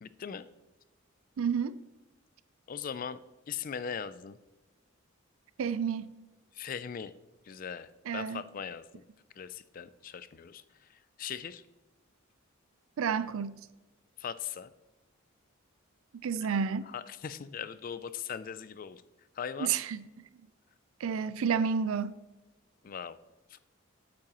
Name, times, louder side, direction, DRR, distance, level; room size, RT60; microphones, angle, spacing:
voice 1, 0.0-0.4 2.7-3.2 3.5-4.4 6.6-7.1 7.5-8.9 9.4-10.6 11.2-11.6 14.2-14.7 16.9-19.0 19.4-19.7 22.8-23.2 23.5-23.6, left 7 dB, 40° left, 0.3 m, -39 dB
voice 2, 1.4-1.8 5.6-6.1 8.1-8.4 13.0-13.6 16.2-16.9 19.6-20.0 21.0-22.2, right 6 dB, 85° right, 0.4 m, -30 dB
8.7 x 8.5 x 3.0 m
head